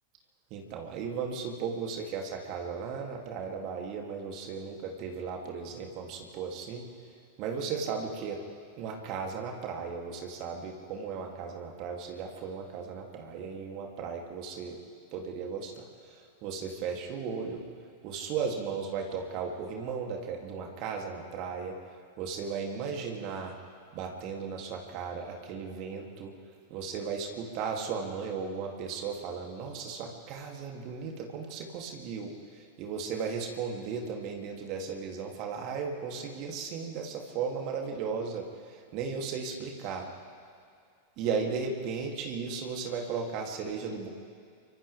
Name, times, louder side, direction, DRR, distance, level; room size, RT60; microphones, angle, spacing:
voice 1, 0.5-6.9 7.4-8.4 8.8-14.8 15.1-17.6 18.0-21.8 22.2-23.6 23.9-26.3 26.7-40.1 41.2-44.1, right 5 dB, 40° right, 1 dB, 2.8 m, -36 dB
29.0 x 25.0 x 3.5 m, 2.3 s
figure-of-eight pair, 90°, 0 cm